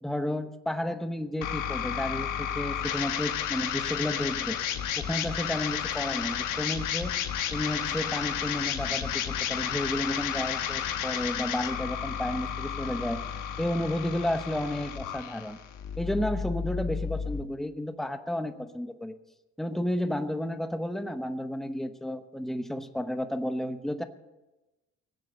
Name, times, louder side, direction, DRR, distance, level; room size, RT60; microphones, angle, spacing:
voice 1, 0.0-4.6 5.0-7.1 7.5-13.2 13.6-15.6 16.0-19.1 19.6-24.0, left 1 dB, ahead, 9 dB, 0.9 m, -32 dB
sound 1, 1.4-17.4, left 9 dB, 90° left, 1.2 m, -32 dB
17.5 x 7.8 x 6.6 m, 1.0 s
cardioid pair, 90°, 30 cm